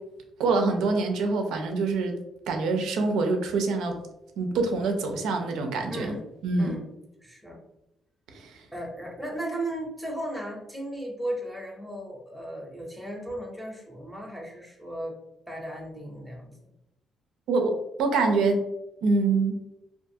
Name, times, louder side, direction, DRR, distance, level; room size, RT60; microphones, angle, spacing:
voice 1, 0.4-2.1 2.5-4.0 4.4-6.1 6.4-6.7 8.3-8.5 17.5-18.6 19.0-19.6, right 3 dB, 85° right, 4 dB, 0.4 m, -25 dB
voice 2, 5.9-6.2 6.6-6.9 7.2-7.6 8.7-15.2 15.5-16.7, right 1 dB, ahead, -1 dB, 0.6 m, -36 dB
2.5 x 2.3 x 2.6 m, 0.88 s
cardioid pair, 90°, 0 cm